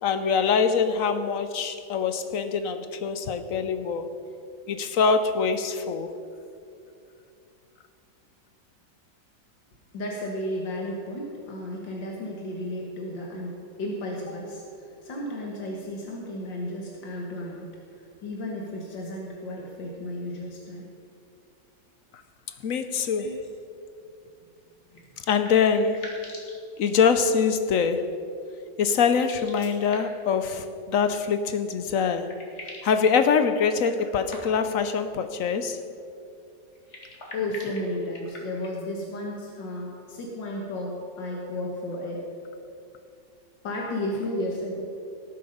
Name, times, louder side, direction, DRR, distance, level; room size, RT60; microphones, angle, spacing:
voice 1, 0.0-4.1 4.7-6.1 22.6-23.3 25.3-26.1 26.8-28.1 28.8-32.3 32.8-35.8, left 6 dB, 65° left, 9 dB, 0.9 m, -24 dB
voice 2, 9.9-20.9 23.2-23.4 24.9-25.0 37.3-42.2 43.6-45.0, left 1 dB, 90° left, -1 dB, 2.1 m, -33 dB
sound 1, 24.9-27.4 29.0-30.3 31.7-31.8 32.0-33.0 33.8-34.8 36.7-38.9, left 1 dB, 40° left, 2.3 m, -44 dB
18.5 x 7.7 x 5.3 m, 2.5 s
omnidirectional pair, 1.9 m